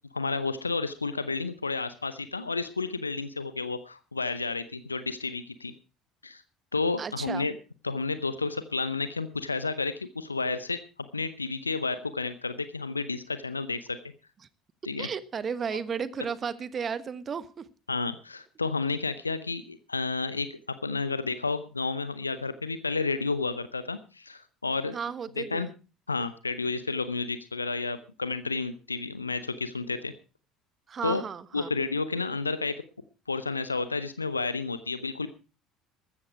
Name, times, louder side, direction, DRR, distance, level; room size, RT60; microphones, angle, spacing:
voice 1, 0.1-5.7 6.2-6.4 6.7-7.5 7.8-10.8 11.1-14.0 14.8-15.1 17.9-20.5 20.8-25.0 25.4-25.7 26.1-30.1 31.0-31.2 31.5-32.7 33.3-35.3, left 3 dB, 85° left, 0.7 m, -31 dB
voice 2, 7.0-7.4 15.0-17.6 24.9-25.7 30.9-31.7, right 6 dB, 35° right, 1.3 m, -34 dB
14.5 x 13.5 x 4.7 m
figure-of-eight pair, 60°, 0 cm